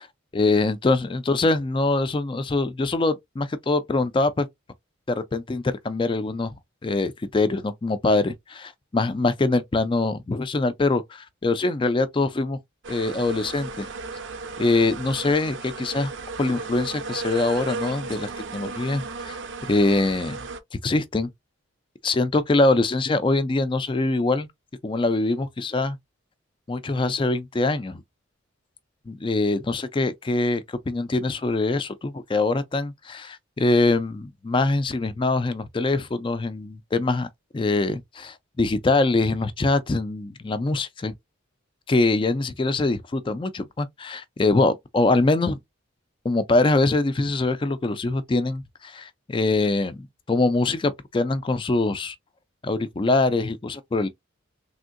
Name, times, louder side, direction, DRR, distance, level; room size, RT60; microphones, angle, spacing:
voice 1, 0.3-4.5 5.1-6.5 6.8-12.6 12.9-13.9 14.6-16.1 16.4-19.4 19.7-20.4 20.8-21.3 22.0-24.5 24.8-26.0 26.7-28.0 29.1-37.3 37.5-41.1 41.9-45.6 46.2-52.1 52.6-54.1, left 2 dB, 25° left, 0.3 m, -23 dB
sound 1, 12.8-20.6, right 4 dB, 60° right, 0.6 m, -35 dB
3.5 x 2.6 x 2.5 m
head